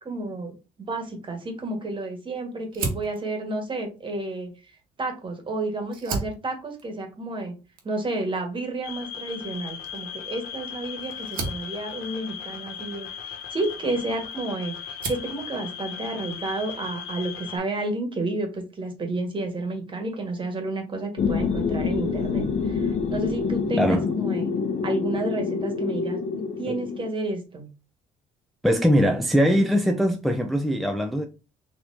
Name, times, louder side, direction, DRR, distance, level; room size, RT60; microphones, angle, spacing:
voice 1, 0.0-4.5 5.0-7.5 7.8-24.5 24.8-27.7, right 2 dB, 30° right, 1.5 m, -31 dB
Fire, 2.7-5.3 5.8-14.4 14.8-15.4, right 4 dB, 65° right, 1.2 m, -37 dB
sound 1, 8.8-17.6, left 8 dB, 75° left, 0.9 m, -37 dB
sound 2, 21.2-27.1, left 5 dB, 45° left, 0.6 m, -26 dB
voice 2, 23.8-24.1 26.7-26.8 28.6-31.3, equal, ahead, 0.4 m, -21 dB
4.2 x 2.8 x 2.6 m
supercardioid pair, 70°, 16 cm